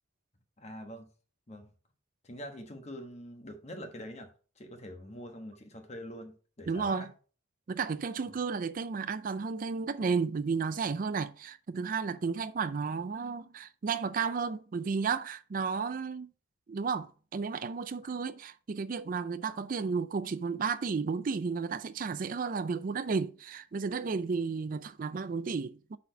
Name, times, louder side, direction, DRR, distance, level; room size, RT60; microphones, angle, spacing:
voice 1, 0.6-1.1 1.5-1.7 2.2-7.1 18.0-18.1, equal, 35° left, 1.2 m, -45 dB
voice 2, 6.7-7.1 7.7-16.3 16.7-26.0, right 5 dB, 45° right, 0.4 m, -33 dB
6.2 x 4.2 x 5.4 m
head